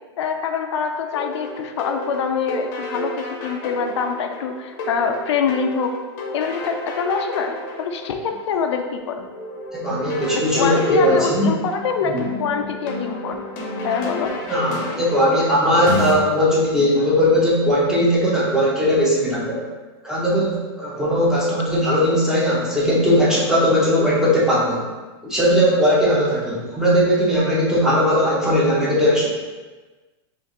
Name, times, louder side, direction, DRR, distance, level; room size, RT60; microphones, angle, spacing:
voice 1, 0.2-6.0 6.3-9.2 10.3-13.4 13.8-14.4, left 6 dB, 80° left, 5 dB, 0.4 m, -25 dB
sound 1, 1.1-16.1, left 1 dB, 40° left, 0.7 m, -32 dB
voice 2, 9.7-11.5 14.5-19.6 20.0-24.8 25.2-29.3, equal, 5° right, -7 dB, 0.7 m, -18 dB
4.9 x 2.5 x 3.0 m, 1.3 s
supercardioid pair, 160°, 15 cm